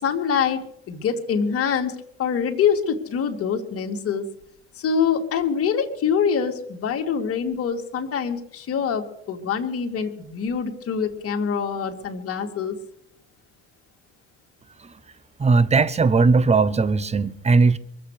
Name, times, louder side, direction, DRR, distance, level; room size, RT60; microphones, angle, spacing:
voice 1, 0.0-4.2 4.8-12.8, left 7 dB, 50° left, 2.5 m, -25 dB
voice 2, 15.4-17.8, right 4 dB, 20° right, 1.0 m, -18 dB
23.0 x 7.9 x 6.6 m
supercardioid pair, 80°, 29 cm